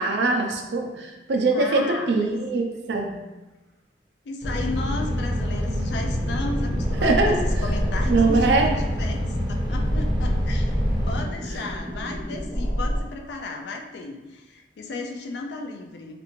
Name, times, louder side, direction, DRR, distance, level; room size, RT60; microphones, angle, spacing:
voice 1, 0.0-3.1 7.0-7.4 8.1-8.7, right 3 dB, 75° right, 2 dB, 0.4 m, -22 dB
voice 2, 1.5-2.3 4.2-9.2 9.5-10.8 11.1-16.2, left 3 dB, 75° left, 3 dB, 0.4 m, -34 dB
sound 1, 4.4-11.2, equal, 30° right, 0.9 m, -27 dB
sound 2, 5.9-13.0, equal, 15° left, 0.8 m, -28 dB
3.2 x 2.5 x 3.0 m, 1.1 s
head